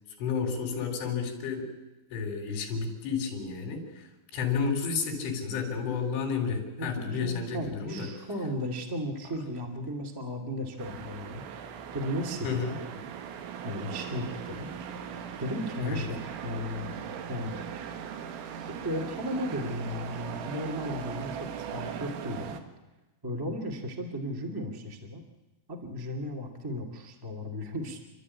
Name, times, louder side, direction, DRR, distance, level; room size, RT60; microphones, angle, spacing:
voice 1, 0.2-1.7 2.1-8.3 12.4-12.8 15.8-16.1, left 5 dB, 80° left, 0 dB, 5.6 m, -31 dB
voice 2, 6.8-11.5 11.9-12.6 13.6-14.7 15.4-17.0 17.3-17.6 18.6-22.6 23.2-25.2 25.7-28.0, equal, 30° right, 2 dB, 0.4 m, -35 dB
sound 1, 10.8-22.6, right 8 dB, 75° right, 3.8 m, -39 dB
29.0 x 12.5 x 9.8 m, 1.1 s
omnidirectional pair, 5.6 m